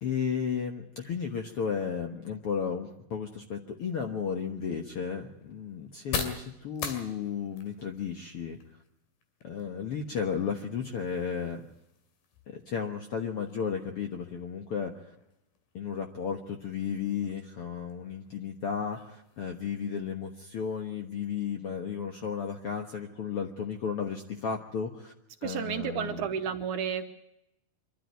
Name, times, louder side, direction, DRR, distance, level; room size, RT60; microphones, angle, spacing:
voice 1, 0.0-8.6 9.4-11.6 12.5-14.9 15.7-25.1 25.4-26.3, left 6 dB, 60° left, 4 dB, 1.6 m, -34 dB
sound 1, 4.0-21.6, left 5 dB, 90° left, 4.3 m, -45 dB
voice 2, 25.4-27.0, right 8 dB, 70° right, 7 dB, 2.4 m, -32 dB
24.5 x 13.0 x 9.3 m, 0.84 s
omnidirectional pair, 4.2 m